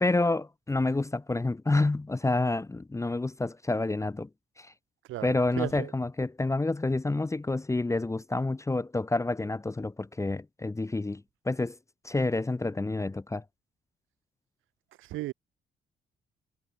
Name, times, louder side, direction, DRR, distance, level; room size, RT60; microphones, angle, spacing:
voice 1, 0.0-4.3 4.6-4.7 5.2-11.8 12.0-13.4, left 2 dB, 15° left, 0.9 m, -28 dB
voice 2, 5.1-5.9 15.0-15.3, right 16 dB, 85° right, 0.9 m, -35 dB
cardioid pair, 90°, 20 cm